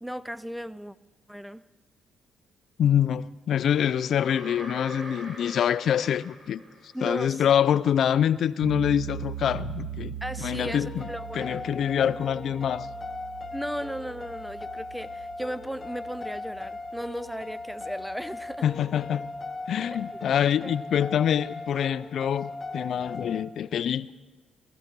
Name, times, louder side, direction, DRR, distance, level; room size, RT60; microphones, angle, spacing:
voice 1, 0.0-1.0 1.3-1.6 6.9-7.5 10.2-11.6 13.5-18.7 20.1-20.2 20.6-20.7, equal, ahead, 0.4 m, -36 dB
voice 2, 2.8-6.6 7.0-10.1 10.4-11.1 11.3-12.9 18.6-19.3 19.7-24.1, left 9 dB, 65° left, 0.4 m, -25 dB
sound 1, 4.2-7.3, right 1 dB, 40° right, 4.3 m, -43 dB
sound 2, 8.6-19.5, right 9 dB, 75° right, 1.5 m, -41 dB
sound 3, 10.6-23.4, left 2 dB, 30° left, 1.0 m, -39 dB
18.5 x 14.0 x 4.6 m
cardioid pair, 90°, 0 cm